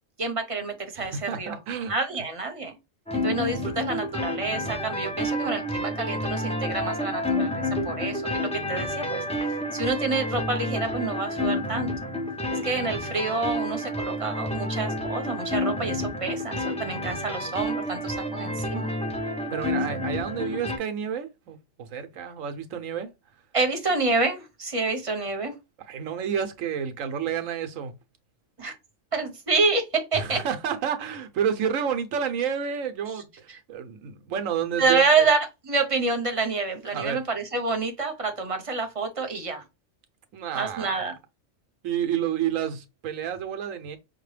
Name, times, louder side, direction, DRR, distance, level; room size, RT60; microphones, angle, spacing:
voice 1, 0.2-1.6 1.9-2.7 3.1-9.2 9.7-11.9 12.5-18.9 23.5-25.5 28.6-28.7 29.1-30.4 33.1-33.2 33.5-33.6 34.8-39.6 40.5-41.2, right 3 dB, 30° right, 0.8 m, -27 dB
voice 2, 1.0-1.9 19.5-23.1 25.9-27.9 30.1-35.3 36.9-37.2 40.3-41.0 41.8-44.0, right 8 dB, 90° right, 1.1 m, -30 dB
sound 1, 3.1-20.8, left 1 dB, 5° left, 0.5 m, -29 dB
5.9 x 2.2 x 3.2 m
omnidirectional pair, 1.3 m